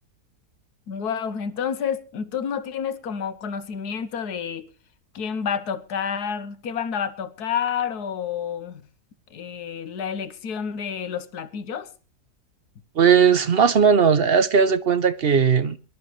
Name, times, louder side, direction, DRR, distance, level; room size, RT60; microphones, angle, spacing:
voice 1, 0.9-4.7 5.1-8.8 9.3-11.9, left 7 dB, 75° left, 1.6 m, -29 dB
voice 2, 13.0-15.8, right 6 dB, 45° right, 0.8 m, -18 dB
23.5 x 12.0 x 3.2 m
omnidirectional pair, 1.7 m